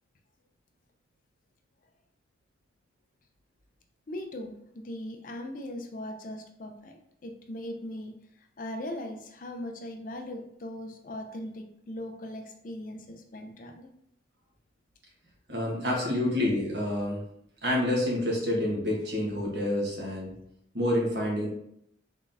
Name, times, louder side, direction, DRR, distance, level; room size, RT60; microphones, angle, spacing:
voice 1, 4.1-7.0 7.2-8.1 8.6-13.9 16.0-16.1, left 1 dB, 45° left, 5 dB, 0.5 m, -39 dB
voice 2, 15.5-17.2 17.6-20.3 20.7-21.5, left 1 dB, 65° right, -3 dB, 1.2 m, -28 dB
3.8 x 3.6 x 2.7 m, 0.74 s
head